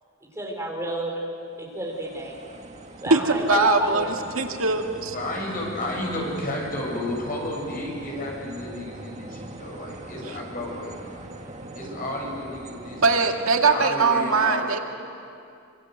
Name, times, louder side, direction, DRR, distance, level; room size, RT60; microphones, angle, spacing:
voice 1, 0.4-1.1 1.6-2.4 3.0-4.1, right 1 dB, 15° right, -1 dB, 4.3 m, -31 dB
sound 1, 1.7-13.3, right 2 dB, 35° right, 1.7 m, -41 dB
voice 2, 3.1-5.1 13.0-14.8, right 3 dB, 90° right, 3 dB, 2.1 m, -21 dB
voice 3, 5.1-11.0 11.7-13.2 13.7-14.8, left 1 dB, 45° left, -1 dB, 7.4 m, -32 dB
26.5 x 24.5 x 7.9 m, 2.5 s
head